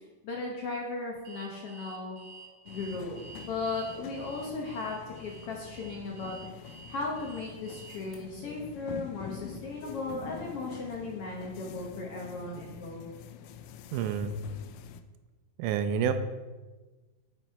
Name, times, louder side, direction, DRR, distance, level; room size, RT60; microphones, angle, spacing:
voice 1, 0.2-2.2 2.6-13.1, left 3 dB, 65° left, -1 dB, 1.6 m, -37 dB
Alarm, 1.3-8.2, right 5 dB, 55° right, 2.3 m, -50 dB
sound 1, 2.7-15.0, left 8 dB, 85° left, 2.1 m, -46 dB
voice 2, 13.9-14.3 15.6-16.1, right 8 dB, 80° right, 9 dB, 2.0 m, -28 dB
7.8 x 6.2 x 4.6 m, 1.2 s
omnidirectional pair, 3.6 m